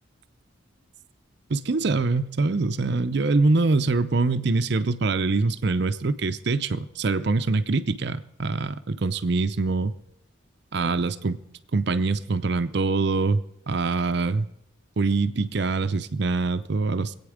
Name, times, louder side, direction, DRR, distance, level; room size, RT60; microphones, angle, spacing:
voice 1, 1.5-9.9 10.7-11.4 11.7-14.5 15.0-17.2, right 3 dB, 55° right, 12 dB, 0.6 m, -24 dB
24.0 x 8.8 x 5.0 m, 0.80 s
head